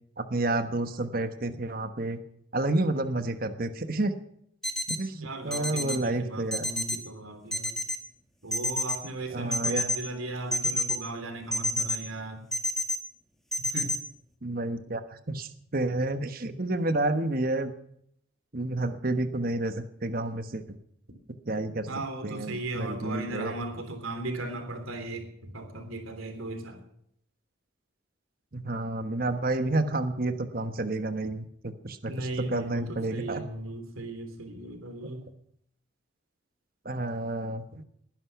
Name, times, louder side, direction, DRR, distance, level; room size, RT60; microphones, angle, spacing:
voice 1, 0.2-2.2 2.5-4.1 4.9-6.7 9.3-9.9 14.4-17.7 18.5-20.8 21.5-21.9 22.2-23.5 28.5-33.4 36.8-37.9, right 2 dB, 45° right, 9 dB, 1.2 m, -30 dB
sound 1, 4.6-5.0 5.5-6.0 6.5-7.0 7.5-8.0 8.5-9.0 9.5-10.0 10.5-11.0 11.5-12.0 12.5-13.0 13.5-14.0, left 1 dB, ahead, 1.6 m, -28 dB
voice 2, 5.2-7.7 8.4-12.5 13.6-13.9 21.9-26.8 32.1-35.2, right 2 dB, 90° right, 6 dB, 3.4 m, -37 dB
19.5 x 11.0 x 5.9 m, 0.72 s
head